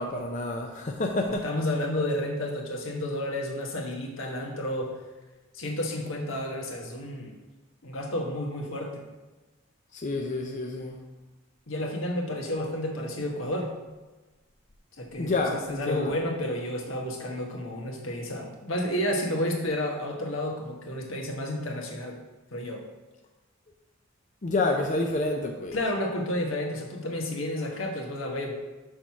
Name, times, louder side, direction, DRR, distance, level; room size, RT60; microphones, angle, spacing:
voice 1, 0.0-1.5 9.9-11.1 15.2-16.2 24.4-25.8, left 2 dB, 40° left, 2 dB, 0.5 m, -29 dB
voice 2, 1.4-5.0 5.5-7.4 7.8-9.0 11.7-13.7 15.0-22.2 22.5-22.8 25.7-28.6, left 1 dB, 80° left, 0 dB, 1.4 m, -31 dB
6.4 x 4.6 x 5.7 m, 1.2 s
head